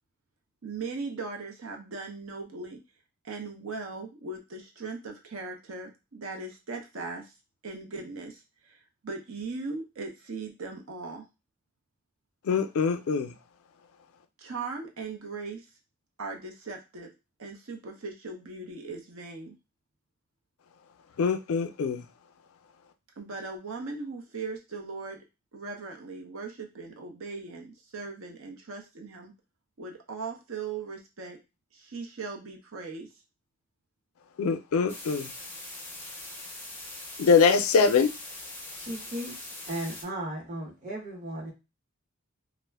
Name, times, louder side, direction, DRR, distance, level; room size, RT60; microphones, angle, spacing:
voice 1, 0.6-2.8 3.2-7.3 7.6-8.4 8.7-8.8 9.0-11.3 14.4-15.7 16.2-17.1 17.4-19.6 23.2-25.2 25.5-29.3 29.8-31.4 31.7-33.1, right 4 dB, 80° right, 0.7 m, -38 dB
voice 2, 12.5-13.3 21.2-22.0 34.4-35.3 37.2-38.1, left 5 dB, 90° left, 0.4 m, -23 dB
sound 1, 34.9-40.0, left 2 dB, 10° left, 0.4 m, -42 dB
voice 3, 38.7-41.5, right 1 dB, 35° right, 0.8 m, -36 dB
2.4 x 2.0 x 3.3 m
head